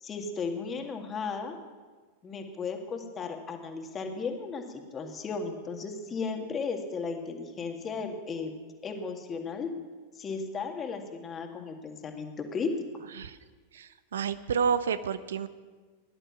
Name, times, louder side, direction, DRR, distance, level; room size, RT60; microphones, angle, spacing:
voice 1, 0.0-1.6 2.2-8.5 8.8-9.7 10.1-12.7, left 5 dB, 25° left, 4 dB, 1.9 m, -35 dB
voice 2, 13.7-15.5, right 6 dB, 65° right, 14 dB, 0.6 m, -29 dB
17.5 x 11.0 x 6.0 m, 1.4 s
figure-of-eight pair, 90°, 0 cm